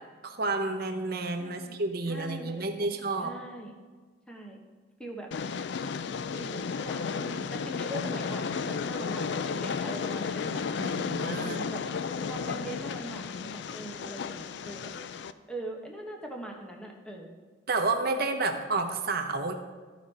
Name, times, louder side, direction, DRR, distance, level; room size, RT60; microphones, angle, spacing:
voice 1, 0.2-3.3 10.8-11.6 17.7-19.5, right 3 dB, 55° right, 5 dB, 0.9 m, -30 dB
voice 2, 1.4-1.8 2.1-2.9 3.2-3.7 4.3-4.6 5.0-5.3 6.3-10.8 11.3-12.0 12.2-14.9 15.5-17.4 18.0-18.6, right 1 dB, 5° left, 0 dB, 1.1 m, -41 dB
Train, 5.3-15.3, left 5 dB, 65° left, 0.4 m, -33 dB
13.5 x 5.1 x 4.2 m, 1.4 s
head